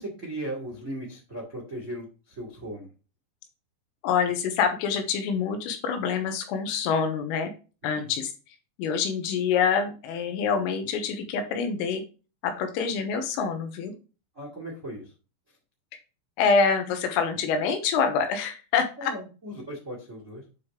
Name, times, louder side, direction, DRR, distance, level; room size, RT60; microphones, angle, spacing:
voice 1, 0.0-2.9 14.3-15.1 19.0-20.4, right 1 dB, 75° right, -1 dB, 0.7 m, -37 dB
voice 2, 4.0-7.5 7.8-8.3 8.8-12.0 12.4-13.9 16.4-19.1, left 6 dB, 85° left, 6 dB, 3.6 m, -26 dB
9.2 x 4.9 x 3.1 m, 0.33 s
omnidirectional pair, 6.0 m